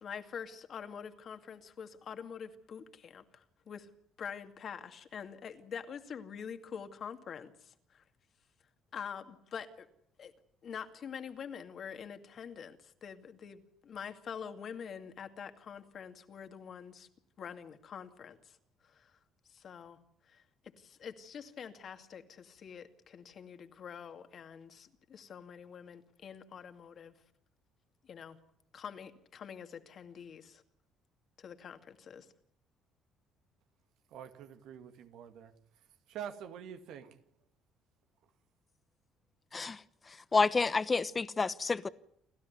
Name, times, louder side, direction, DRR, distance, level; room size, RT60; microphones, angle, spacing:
voice 1, 0.0-3.9 4.2-8.0 8.9-9.9 10.2-10.3 10.6-17.1 17.4-18.6 18.8-19.2 19.5-20.0 20.2-20.4 20.8-27.1 28.0-28.4 28.7-30.6 31.4-32.3, left 7 dB, 50° left, 2.3 m, -46 dB
voice 2, 34.1-35.5 36.1-37.2, right 8 dB, 75° right, 2.1 m, -46 dB
voice 3, 40.3-41.9, left 4 dB, 30° left, 1.1 m, -29 dB
29.0 x 13.0 x 9.6 m
cardioid pair, 90°, 0 cm